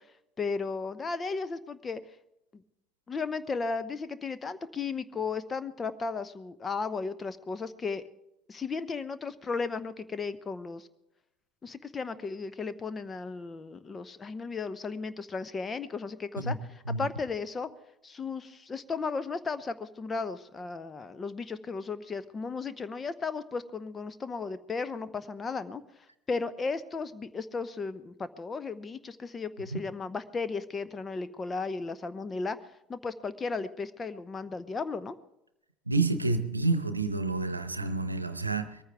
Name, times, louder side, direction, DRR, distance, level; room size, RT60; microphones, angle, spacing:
voice 1, 0.4-2.0 3.1-8.0 8.5-10.9 11.6-16.6 17.0-17.7 18.0-25.8 26.3-32.6 32.9-35.1, left 4 dB, 25° left, 14 dB, 0.8 m, -35 dB
voice 2, 35.9-38.8, right 3 dB, 90° right, 11 dB, 0.8 m, -29 dB
22.0 x 14.5 x 3.4 m, 0.85 s
figure-of-eight pair, 65°, 0 cm